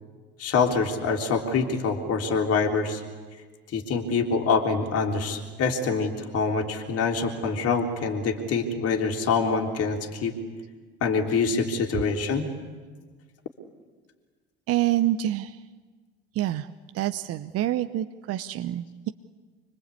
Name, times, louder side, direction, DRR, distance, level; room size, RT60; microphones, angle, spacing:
voice 1, 0.4-3.0 3.7-10.3 11.0-12.5, left 4 dB, 50° left, 2 dB, 3.6 m, -25 dB
voice 2, 14.7-15.6 16.3-16.7 16.9-19.1, right 13 dB, 50° right, 9 dB, 1.0 m, -27 dB
26.5 x 24.0 x 8.5 m, 1.4 s
hypercardioid pair, 65°, 31 cm